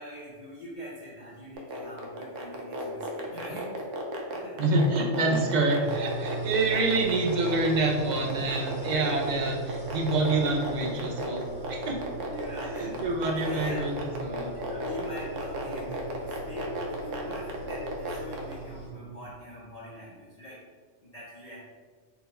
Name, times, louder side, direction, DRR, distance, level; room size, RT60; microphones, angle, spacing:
voice 1, 0.0-3.7 4.3-4.6 5.5-6.6 8.2-9.2 12.3-13.9 14.5-20.6 21.0-21.6, equal, 40° left, -7 dB, 0.6 m, -44 dB
sound 1, 1.6-18.5, right 2 dB, 75° right, 1.0 m, -34 dB
voice 2, 4.6-12.0 12.6-14.5 15.7-15.9, right 2 dB, 50° right, -1 dB, 0.5 m, -27 dB
sound 2, 5.8-18.9, right 3 dB, 5° right, 0.6 m, -40 dB
4.0 x 2.2 x 4.0 m, 1.5 s
omnidirectional pair, 1.3 m